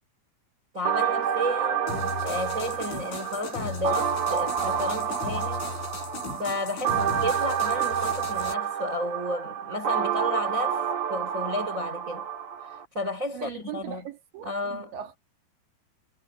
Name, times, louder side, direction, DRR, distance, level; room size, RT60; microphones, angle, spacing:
voice 1, 0.7-5.7 6.4-12.3 12.6-14.1 14.4-14.9, left 1 dB, 20° right, 3.1 m, -32 dB
sound 1, 0.8-12.8, right 8 dB, 45° right, 2.6 m, -29 dB
sound 2, 1.9-8.5, left 4 dB, 90° left, 10.0 m, -37 dB
voice 2, 6.8-7.2 13.3-15.2, right 9 dB, 75° right, 5.2 m, -39 dB
omnidirectional pair, 5.3 m